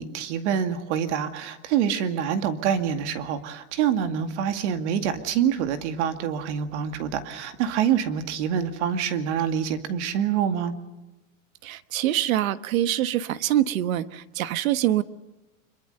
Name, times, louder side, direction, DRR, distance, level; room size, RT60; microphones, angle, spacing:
voice 1, 0.0-10.7, right 8 dB, 60° right, 8 dB, 2.3 m, -26 dB
voice 2, 11.6-15.0, right 13 dB, 85° right, 13 dB, 1.3 m, -24 dB
25.5 x 23.0 x 6.7 m, 1.1 s
supercardioid pair, 165°, 40 cm